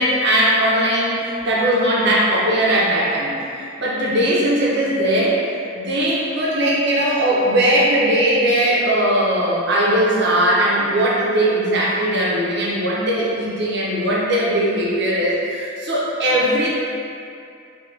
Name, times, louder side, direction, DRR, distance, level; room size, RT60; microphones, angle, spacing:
voice 1, 0.0-16.7, right 1 dB, 60° right, -5 dB, 0.8 m, -19 dB
3.4 x 2.9 x 3.2 m, 2.4 s
head